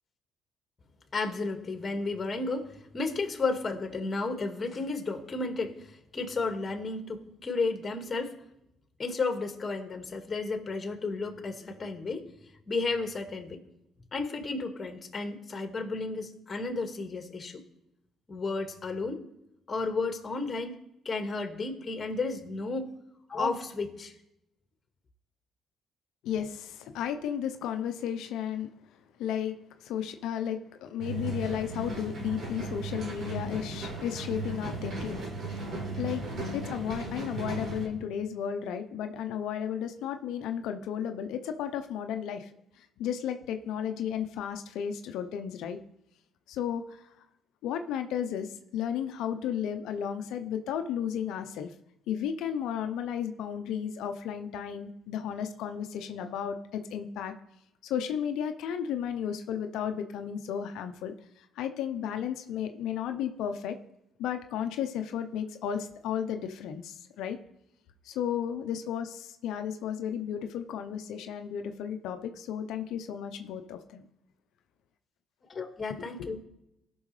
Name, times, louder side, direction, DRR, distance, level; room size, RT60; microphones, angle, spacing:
voice 1, 1.1-8.3 9.0-12.2 12.7-13.6 14.1-17.6 18.3-19.2 19.7-22.9 23.3-24.2 75.5-76.4, left 3 dB, 35° left, 5 dB, 1.8 m, -33 dB
voice 2, 26.2-28.7 29.2-29.6 29.8-35.2 36.0-36.2 36.5-42.5 42.8-45.8 46.5-47.1 47.6-51.7 52.1-57.3 57.8-63.8 64.2-67.4 68.1-74.0 76.2-76.3, left 9 dB, 80° left, 7 dB, 0.7 m, -34 dB
sound 1, 31.0-37.9, right 2 dB, 55° right, 3.6 m, -36 dB
17.0 x 6.2 x 3.3 m, 0.84 s
supercardioid pair, 65°, 0 cm